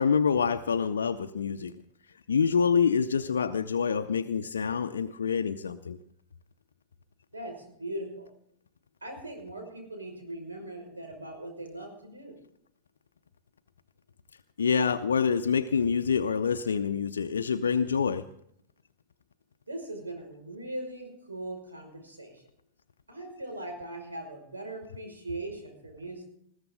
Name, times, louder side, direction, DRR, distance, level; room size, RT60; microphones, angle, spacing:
voice 1, 0.0-1.7 2.3-6.0 14.6-18.2, left 6 dB, 70° left, 7 dB, 0.6 m, -26 dB
voice 2, 7.3-8.3 9.0-12.4 19.7-22.5 23.1-26.3, right 1 dB, 75° right, 3 dB, 5.6 m, -40 dB
20.5 x 15.0 x 3.8 m, 0.70 s
figure-of-eight pair, 90°, 0 cm